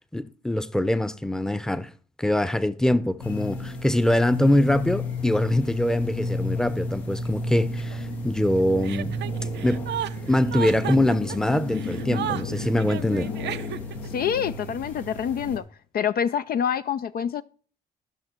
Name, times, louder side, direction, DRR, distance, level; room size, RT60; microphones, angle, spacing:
voice 1, 0.1-1.9 2.2-9.1 9.6-9.9 10.3-13.3, left 1 dB, 5° left, 0.7 m, -23 dB
sound 1, 3.2-15.6, left 2 dB, 90° left, 1.5 m, -32 dB
Chuckle chortle, 8.8-14.1, right 11 dB, 65° right, 0.5 m, -33 dB
voice 2, 14.0-15.6 15.9-17.4, left 8 dB, 50° left, 0.4 m, -26 dB
13.5 x 5.9 x 4.4 m
supercardioid pair, 55°, 20 cm